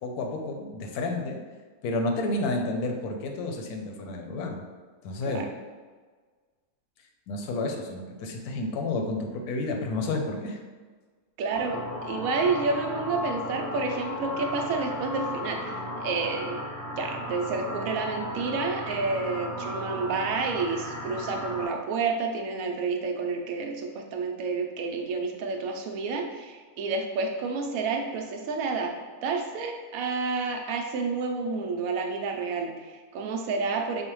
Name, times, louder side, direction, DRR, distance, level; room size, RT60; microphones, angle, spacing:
voice 1, 0.0-1.4 1.8-4.6 5.0-5.5 7.3-10.6, left 2 dB, 80° left, 3 dB, 1.1 m, -30 dB
voice 2, 11.4-16.6 17.0-28.9 29.2-34.0, right 4 dB, 75° right, 3 dB, 1.0 m, -30 dB
sound 1, 11.5-21.7, left 1 dB, 5° left, 0.4 m, -35 dB
5.4 x 2.1 x 3.0 m, 1.4 s
omnidirectional pair, 1.6 m